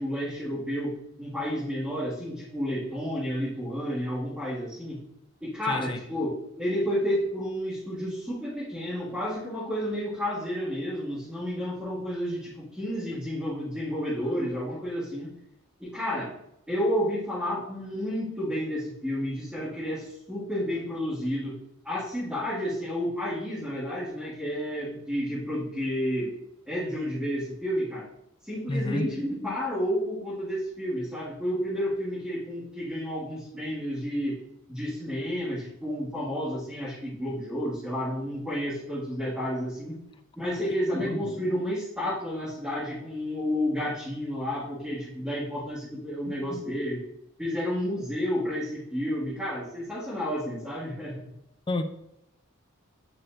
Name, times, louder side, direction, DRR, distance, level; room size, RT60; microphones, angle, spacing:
voice 1, 0.0-5.0 5.4-15.3 15.8-16.3 16.7-21.6 21.8-26.3 26.7-28.1 28.4-34.4 34.7-40.0 40.4-47.0 47.4-51.2, equal, 5° right, -11 dB, 1.8 m, -31 dB
voice 2, 5.7-6.0 28.7-29.1 41.1-41.2 46.3-46.4 51.7-51.8, left 2 dB, 25° left, 8 dB, 0.5 m, -30 dB
8.8 x 4.3 x 2.5 m, 0.80 s
head